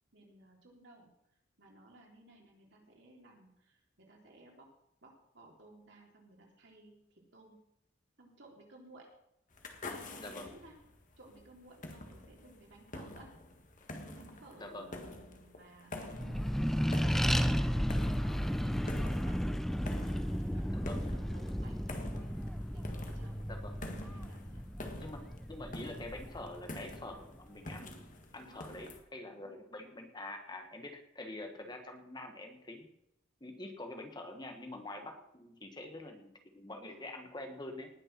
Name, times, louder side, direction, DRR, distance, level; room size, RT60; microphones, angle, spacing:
voice 1, 0.1-1.1 1.6-4.7 5.0-7.0 7.3-7.5 8.2-9.1 9.9-10.7 11.2-13.3 14.0-17.7 18.1-19.4 20.1-22.3 22.7-23.3 23.7-24.6 28.3-28.7 29.3-29.5 34.9-35.1 36.7-37.0, right 2 dB, 60° right, -1 dB, 3.7 m, -58 dB
sound 1, 9.5-29.0, left 2 dB, 40° left, 1.7 m, -48 dB
voice 2, 10.2-10.6 14.6-14.9 20.7-21.0 23.5-23.8 25.0-25.2 25.5-32.9 33.4-37.9, left 2 dB, 20° left, 4 dB, 1.4 m, -46 dB
Accelerating revving vroom, 16.1-27.1, equal, ahead, 0.5 m, -34 dB
19.0 x 6.6 x 6.1 m, 0.81 s
head